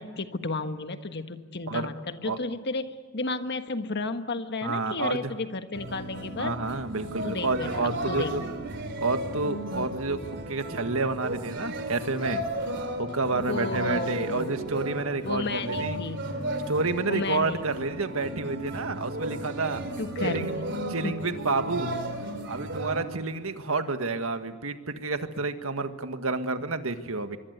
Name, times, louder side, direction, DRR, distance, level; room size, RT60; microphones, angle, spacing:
voice 1, 0.0-6.5 7.2-8.3 13.5-14.5 15.2-16.2 17.1-17.7 20.0-20.6 21.0-21.1, left 3 dB, 50° left, 8 dB, 1.5 m, -32 dB
voice 2, 4.6-5.3 6.4-8.5 9.0-12.4 13.0-16.0 16.7-19.8 20.2-20.5 20.9-21.9 22.5-27.4, right 3 dB, 70° right, 8 dB, 1.8 m, -29 dB
sound 1, 5.7-23.0, right 1 dB, 55° right, 3.5 m, -34 dB
25.0 x 23.5 x 8.2 m, 1.5 s
head